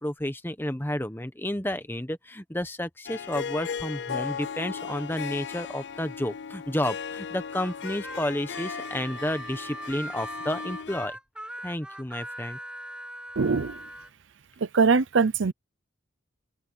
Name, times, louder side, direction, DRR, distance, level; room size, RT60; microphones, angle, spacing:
voice 1, 0.0-11.2 11.6-12.6, left 1 dB, 10° left, 1.1 m, -31 dB
Harp, 3.1-11.1, left 6 dB, 55° left, 0.5 m, -37 dB
Harmonica, 7.5-14.1, right 1 dB, 5° right, 0.7 m, -40 dB
voice 2, 13.4-13.8 14.7-15.5, right 5 dB, 70° right, 0.6 m, -22 dB
open air
head